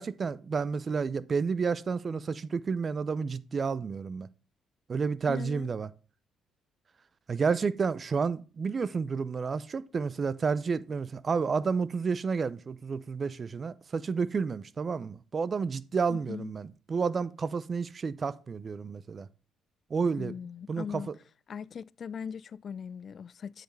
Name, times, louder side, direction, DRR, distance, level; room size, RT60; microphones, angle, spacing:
voice 1, 0.0-4.3 4.9-5.9 7.3-19.3 19.9-20.3 20.7-21.1, right 5 dB, 40° right, 0.5 m, -30 dB
voice 2, 5.3-5.7 16.1-16.5 20.2-21.1 21.5-23.6, left 7 dB, 50° left, 0.3 m, -40 dB
7.8 x 6.7 x 3.2 m
hypercardioid pair, 55°, 0 cm